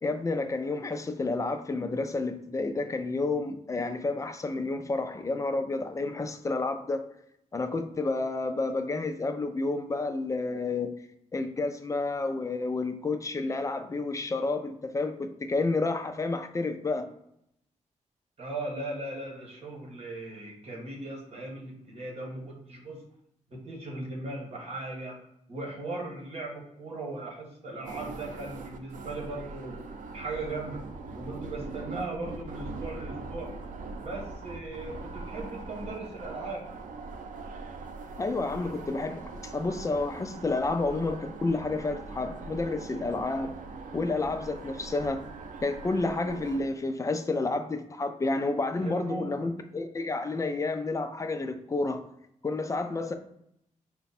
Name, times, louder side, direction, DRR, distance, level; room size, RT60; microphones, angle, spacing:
voice 1, 0.0-7.0 7.5-10.9 11.3-17.1 38.2-43.6 43.9-45.2 45.6-52.0 52.4-53.1, left 3 dB, 25° left, 7 dB, 0.4 m, -30 dB
voice 2, 18.4-23.0 23.5-29.8 30.1-30.8 31.1-33.5 34.0-36.7 48.8-49.5, right 2 dB, 50° right, -1 dB, 1.4 m, -38 dB
sound 1, 27.8-46.6, right 3 dB, 90° right, 0.5 m, -41 dB
5.0 x 2.3 x 4.1 m, 0.76 s
wide cardioid pair, 145°, 13 cm